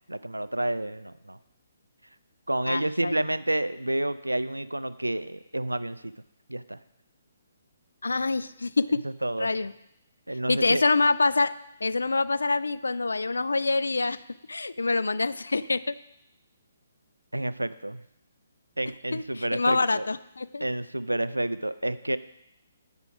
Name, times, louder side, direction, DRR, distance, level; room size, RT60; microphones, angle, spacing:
voice 1, 0.1-1.4 2.5-6.1 6.5-6.8 9.2-9.5 10.3-10.8 17.3-18.0 18.8-20.1 20.6-22.2, right 1 dB, 90° right, 16 dB, 0.3 m, -29 dB
voice 2, 2.7-3.2 8.0-9.0 9.4-9.7 10.5-11.5 11.8-14.2 14.5-15.9 19.1-20.6, left 3 dB, 75° left, 15 dB, 0.3 m, -26 dB
8.2 x 5.8 x 5.0 m, 0.82 s
figure-of-eight pair, 135°, 0 cm